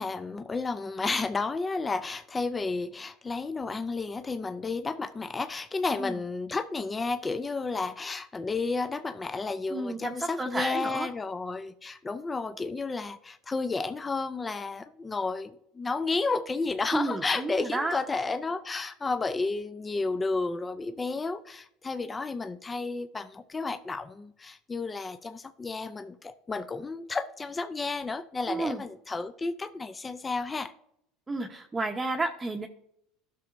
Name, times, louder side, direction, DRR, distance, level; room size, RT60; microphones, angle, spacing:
voice 1, 0.0-30.7, left 3 dB, 20° left, 10 dB, 0.5 m, -32 dB
voice 2, 9.7-11.1 16.9-18.0 28.5-28.8 31.3-32.7, right 2 dB, 15° right, 1 dB, 0.9 m, -31 dB
12.0 x 6.1 x 2.6 m, 0.74 s
supercardioid pair, 90°, 0 cm